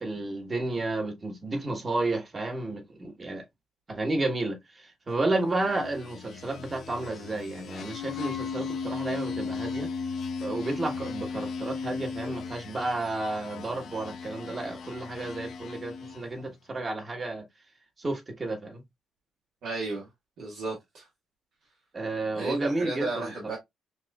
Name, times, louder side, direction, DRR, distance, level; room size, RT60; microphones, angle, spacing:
voice 1, 0.0-3.4 3.9-9.9 10.4-17.4 18.0-18.8 21.9-23.6, right 2 dB, 30° right, 1.2 m, -31 dB
sound 1, 5.5-16.4, left 5 dB, 65° left, 0.6 m, -36 dB
voice 2, 19.6-20.1 20.4-21.1 22.3-23.6, right 3 dB, 75° right, 1.4 m, -33 dB
5.8 x 2.5 x 2.3 m
cardioid pair, 90°, 0 cm